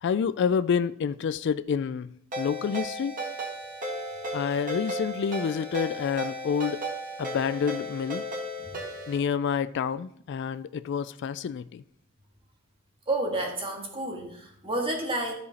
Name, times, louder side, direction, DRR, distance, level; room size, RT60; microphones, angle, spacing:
voice 1, 0.0-2.1 2.4-3.1 4.3-6.9 7.2-8.3 9.1-11.8, left 7 dB, 55° left, 0.3 m, -28 dB
Ringtone, 2.3-9.2, equal, 40° right, 2.1 m, -35 dB
voice 2, 13.1-15.3, right 1 dB, 25° right, 1.8 m, -30 dB
13.0 x 5.0 x 4.1 m
head